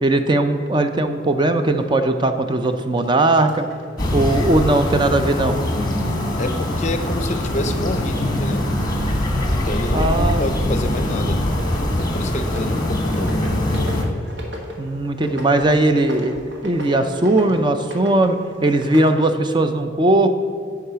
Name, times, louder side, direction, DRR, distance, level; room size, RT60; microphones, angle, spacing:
voice 1, 0.0-3.6 4.1-5.6 9.9-10.4 14.8-20.3, right 2 dB, 25° right, 7 dB, 0.4 m, -19 dB
sound 1, 1.6-5.2 5.5-19.1, left 1 dB, 80° right, 1.5 m, -37 dB
sound 2, 4.0-14.0, left 1 dB, 20° left, 1.1 m, -22 dB
voice 2, 6.4-8.7 9.5-11.4 12.1-13.4, left 1 dB, 40° left, 8 dB, 0.6 m, -28 dB
10.5 x 4.7 x 5.6 m, 2.3 s
head